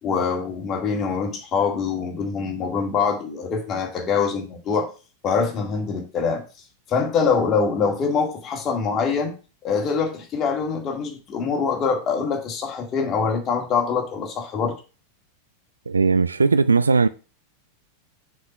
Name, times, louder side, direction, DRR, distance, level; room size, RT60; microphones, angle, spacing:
voice 1, 0.0-4.9 5.2-6.4 6.9-9.4 9.6-14.7, left 5 dB, 25° left, 2.1 m, -24 dB
voice 2, 15.9-17.1, right 4 dB, 75° right, 0.3 m, -18 dB
6.4 x 4.7 x 5.7 m
figure-of-eight pair, 90°, 0 cm